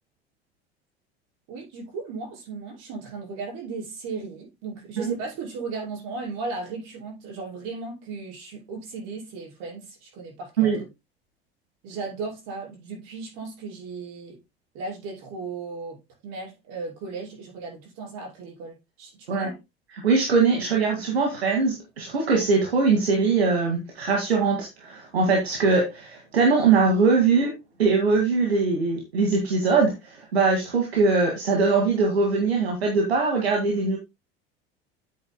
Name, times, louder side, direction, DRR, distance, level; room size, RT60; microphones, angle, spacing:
voice 1, 1.5-10.8 11.8-14.4 14.7-16.0 16.2-19.6, right 4 dB, 55° right, 6.0 m, -36 dB
voice 2, 20.0-27.5 27.8-29.9 30.3-34.0, right 4 dB, 80° right, 2.2 m, -21 dB
11.0 x 8.7 x 2.2 m
figure-of-eight pair, 75°, 31 cm